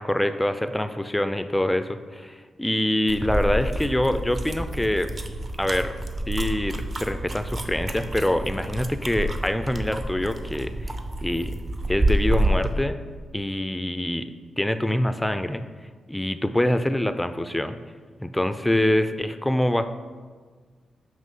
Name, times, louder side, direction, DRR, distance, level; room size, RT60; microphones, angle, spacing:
voice 1, 0.0-5.1 5.6-6.0 6.3-11.0 11.2-11.5 11.9-13.0 13.3-14.2 14.6-15.6 16.1-17.8 18.2-19.8, left 1 dB, 10° left, 10 dB, 0.3 m, -25 dB
sound 1, 3.1-12.7, right 1 dB, 35° right, 0.6 m, -28 dB
7.4 x 3.1 x 5.4 m, 1.5 s
cardioid pair, 85°, 0 cm